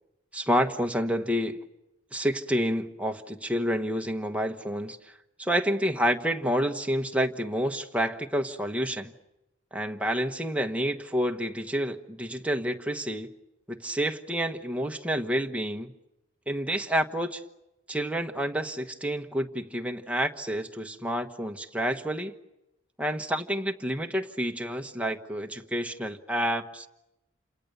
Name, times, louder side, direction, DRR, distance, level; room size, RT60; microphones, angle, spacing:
voice 1, 0.3-1.6 2.1-5.0 5.4-9.1 9.7-13.3 13.7-15.9 16.5-17.4 17.9-22.3 23.0-26.9, equal, 5° right, 4 dB, 1.3 m, -29 dB
28.5 x 27.0 x 6.8 m, 0.93 s
head